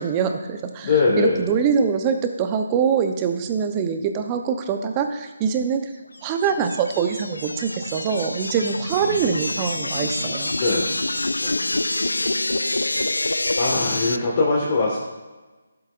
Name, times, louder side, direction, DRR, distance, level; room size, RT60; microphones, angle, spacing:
voice 1, 0.0-5.9 6.2-10.5, right 6 dB, 20° right, 6 dB, 0.7 m, -24 dB
voice 2, 0.8-1.5 9.0-9.3 10.6-10.9 11.4-11.5 13.6-15.0, left 3 dB, 35° left, -4 dB, 1.6 m, -22 dB
sound 1, 6.2-14.2, left 2 dB, 85° left, 0.3 m, -26 dB
12.0 x 7.8 x 2.5 m, 1.2 s
figure-of-eight pair, 155°, 0 cm